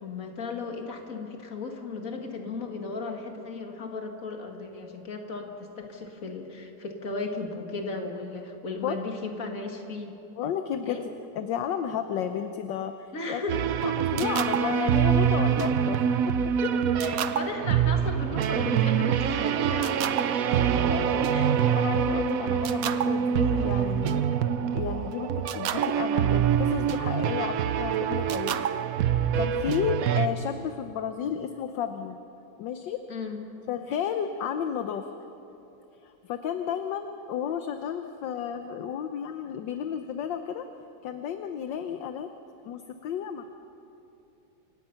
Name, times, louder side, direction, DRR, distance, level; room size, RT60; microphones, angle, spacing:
voice 1, 0.0-10.2 10.8-11.0 13.1-13.6 16.6-16.7 17.0-20.2 21.3-21.8 33.1-33.4, left 3 dB, 45° left, 3 dB, 2.2 m, -36 dB
voice 2, 10.4-11.1 11.3-13.4 13.8-16.2 20.9-21.2 21.7-24.2 24.7-28.7 29.0-29.1 29.4-32.2 32.6-33.0 33.7-35.0 36.0-40.7 41.0-42.3 42.6-43.5, left 8 dB, 70° left, 8 dB, 1.4 m, -32 dB
sound 1, 13.5-30.3, right 8 dB, 65° right, 0.9 m, -25 dB
28.5 x 17.0 x 5.7 m, 2.9 s
omnidirectional pair, 2.2 m